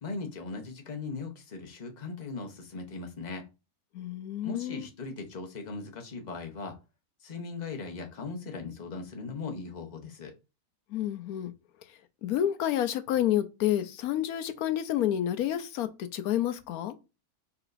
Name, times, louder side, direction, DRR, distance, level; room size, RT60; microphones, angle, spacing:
voice 1, 0.0-3.5 4.4-6.8 7.2-10.3, left 4 dB, 35° left, 0.9 m, -39 dB
voice 2, 3.9-4.9 10.9-11.5 12.2-17.0, left 11 dB, 75° left, 1.1 m, -29 dB
4.8 x 4.0 x 2.6 m
omnidirectional pair, 1.6 m